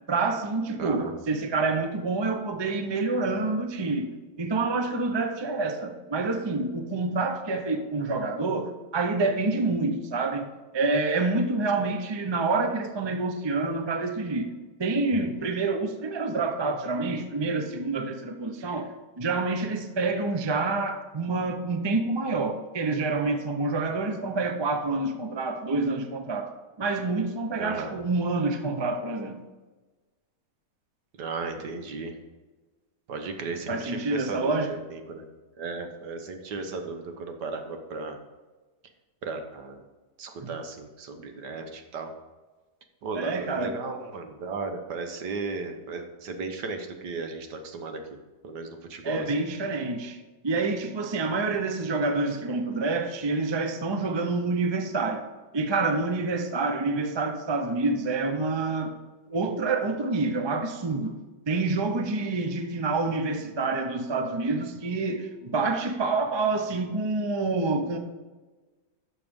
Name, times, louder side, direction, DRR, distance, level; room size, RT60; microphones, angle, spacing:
voice 1, 0.1-4.1 4.4-14.5 14.8-29.4 33.7-34.8 40.4-40.6 43.1-43.8 49.0-55.2 55.5-58.9 59.3-61.2 61.5-68.0, right 3 dB, 35° right, 0.4 m, -27 dB
voice 2, 0.8-1.1 11.8-11.9 27.6-27.9 31.2-32.1 33.1-35.3 35.6-38.2 39.2-39.8 40.2-42.1 43.0-48.0 48.4-49.3, right 4 dB, 80° right, 1.7 m, -35 dB
12.0 x 6.7 x 3.6 m
omnidirectional pair, 1.8 m